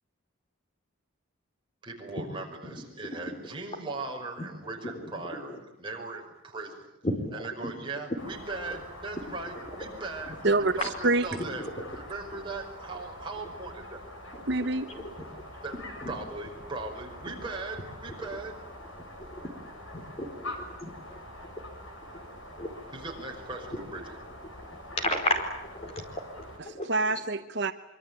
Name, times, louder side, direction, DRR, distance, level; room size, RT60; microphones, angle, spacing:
voice 1, 1.8-6.9 7.3-10.4 10.8-11.6 12.1-14.0 15.6-15.8 16.1-18.6 22.9-24.1, right 3 dB, 25° right, 1 dB, 5.5 m, -39 dB
voice 2, 4.8-5.3 7.0-7.7 9.9-10.0 10.8-10.9 11.7-11.8 14.9-15.3 16.0-16.1 18.1-18.2 19.3-19.5 19.9-20.9 22.1-22.3 22.6-22.7 23.7-23.8 25.0-25.4 25.7-25.9 26.4-26.9, left 1 dB, 30° left, 5 dB, 4.7 m, -33 dB
sound 1, 8.2-26.6, left 1 dB, 70° left, 6.0 m, -45 dB
voice 3, 14.5-14.9 26.9-27.7, right 2 dB, 55° right, 9 dB, 1.1 m, -25 dB
25.5 x 24.0 x 9.1 m, 0.80 s
head